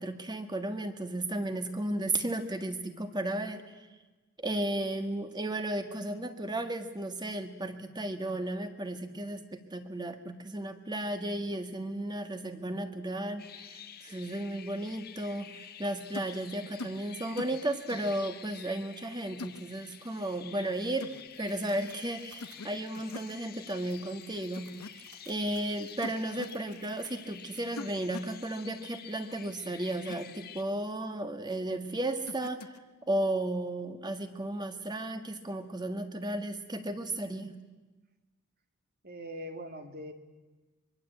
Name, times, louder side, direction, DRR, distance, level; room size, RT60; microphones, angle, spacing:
voice 1, 0.0-3.9 4.4-21.1 21.4-32.8 33.1-37.6, right 1 dB, 20° right, 7 dB, 1.7 m, -34 dB
sound 1, 13.4-30.6, left 9 dB, 45° left, 1.4 m, -50 dB
sound 2, 16.1-16.4 16.8-17.0 17.4-17.6 17.9-18.1 19.4-19.6 21.0-21.2 22.4-22.7 22.9-23.3 24.6-24.9 26.0-26.6 27.8-28.3 29.9-30.2 32.3-32.8, left 2 dB, 90° left, 1.2 m, -42 dB
sound 3, 21.3-27.6, right 6 dB, 90° right, 3.7 m, -59 dB
voice 2, 39.0-40.1, equal, 45° right, 6 dB, 2.3 m, -41 dB
24.5 x 23.0 x 8.4 m, 1.2 s
head